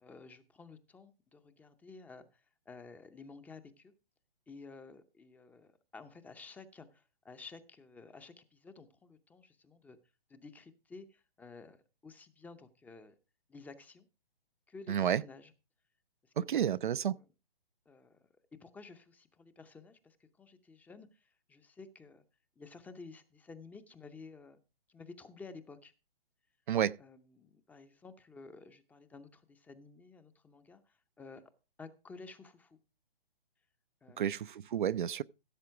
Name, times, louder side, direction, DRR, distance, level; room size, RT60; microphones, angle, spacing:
voice 1, 0.0-3.9 4.5-10.0 10.3-11.8 12.0-13.1 13.5-14.1 14.7-15.5 16.2-16.9 17.2-17.3 17.9-18.2 18.6-22.2 22.6-24.6 24.9-25.9 27.0-31.4 31.8-32.8 34.0-34.3, left 4 dB, 5° left, 0.6 m, -53 dB
voice 2, 14.9-15.2 16.4-17.2 26.7-27.0 34.2-35.2, right 9 dB, 55° right, 0.5 m, -30 dB
15.5 x 7.4 x 4.6 m
figure-of-eight pair, 135°, 29 cm